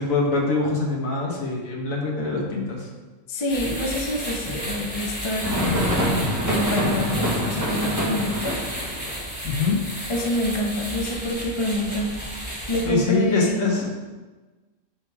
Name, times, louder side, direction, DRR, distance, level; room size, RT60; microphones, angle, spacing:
voice 1, 0.0-2.9 7.1-7.2 9.4-9.9 12.9-13.9, left 3 dB, 85° left, -2 dB, 1.8 m, -24 dB
voice 2, 3.3-8.6 10.1-12.2 12.7-13.8, left 1 dB, 25° left, 1 dB, 0.8 m, -27 dB
sound 1, 3.5-12.8, equal, 10° left, 2.7 m, -33 dB
sound 2, 5.4-9.1, equal, 15° right, 1.7 m, -25 dB
8.3 x 5.1 x 4.8 m, 1.2 s
omnidirectional pair, 1.4 m